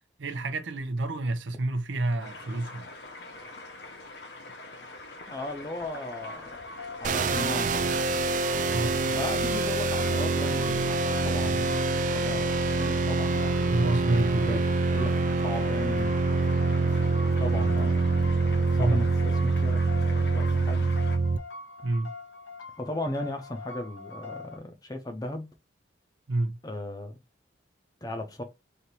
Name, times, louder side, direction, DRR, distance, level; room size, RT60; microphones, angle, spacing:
voice 1, 0.2-2.9 8.7-9.2 13.7-14.6 18.8-19.0 21.8-22.1 26.3-26.6, right 2 dB, 80° right, 0.7 m, -28 dB
sound 1, 2.2-21.2, left 2 dB, 60° left, 0.9 m, -44 dB
voice 2, 5.3-6.6 7.0-8.0 9.1-11.8 12.1-13.7 14.4-14.6 14.9-16.4 17.4-18.0 18.8-19.8 20.1-20.9 22.8-25.5 26.6-27.2 28.0-28.4, left 1 dB, 20° left, 0.7 m, -36 dB
sound 2, 5.8-24.6, left 4 dB, 90° left, 1.1 m, -44 dB
sound 3, 7.0-21.4, right 3 dB, 45° right, 0.3 m, -25 dB
3.3 x 2.8 x 4.2 m
head